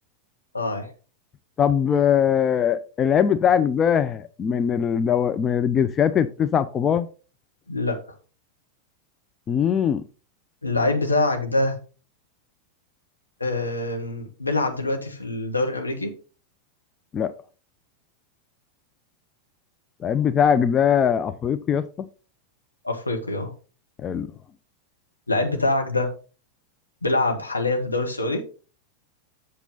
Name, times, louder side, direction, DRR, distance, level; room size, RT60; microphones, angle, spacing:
voice 1, 0.5-0.9 7.7-8.0 10.6-11.8 13.4-16.1 22.8-23.5 25.3-26.1 27.0-28.4, left 2 dB, 80° left, 1.7 m, -24 dB
voice 2, 1.6-7.1 9.5-10.0 17.1-17.3 20.0-22.1 24.0-24.3, left 8 dB, 25° left, 0.5 m, -21 dB
8.2 x 6.8 x 4.0 m
figure-of-eight pair, 90°, 0 cm